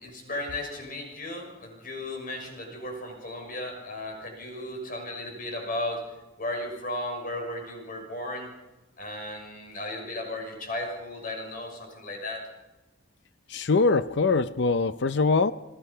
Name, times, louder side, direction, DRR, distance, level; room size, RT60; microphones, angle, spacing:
voice 1, 0.0-6.0 6.4-8.5 9.0-12.5, left 1 dB, 45° left, 1 dB, 6.3 m, -35 dB
voice 2, 13.5-15.5, left 4 dB, 65° left, 12 dB, 0.6 m, -23 dB
29.5 x 20.0 x 5.6 m, 1.1 s
head